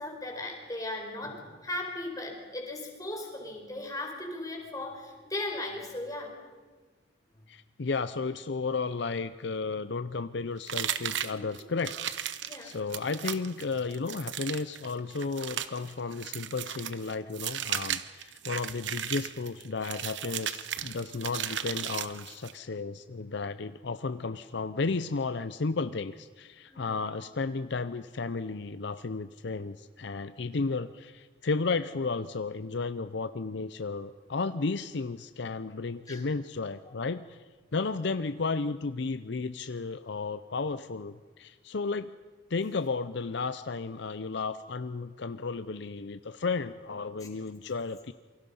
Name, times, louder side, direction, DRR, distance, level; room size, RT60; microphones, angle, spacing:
voice 1, 0.0-6.3 11.3-11.4 12.4-12.8 26.7-27.0 36.1-36.2 36.8-36.9, left 1 dB, 20° left, 1 dB, 4.6 m, -37 dB
voice 2, 7.5-12.0 12.2-12.4 12.6-37.4 37.7-42.1 42.5-48.1, left 4 dB, 65° left, 12 dB, 0.6 m, -33 dB
sound 1, 10.7-22.6, right 10 dB, 65° right, 1.0 m, -36 dB
28.0 x 24.0 x 5.5 m, 1.4 s
head